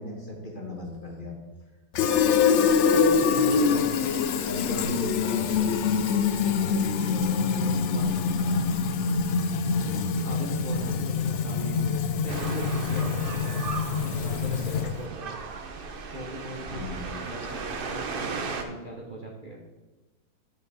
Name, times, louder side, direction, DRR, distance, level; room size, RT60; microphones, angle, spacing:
voice 1, 0.0-1.4 3.5-4.0 4.5-5.6 6.5-6.8 16.7-17.1, left 1 dB, 35° left, -1 dB, 1.3 m, -37 dB
Fill (with liquid), 1.9-15.1, left 6 dB, 90° left, 0.6 m, -25 dB
voice 2, 2.9-4.1 7.0-9.1 9.9-13.6 14.0-15.5 16.1-19.6, right 1 dB, 35° right, -2 dB, 0.9 m, -39 dB
sound 1, 12.3-18.6, right 4 dB, 60° right, 0.5 m, -36 dB
11.0 x 5.1 x 4.1 m, 1.2 s
omnidirectional pair, 1.8 m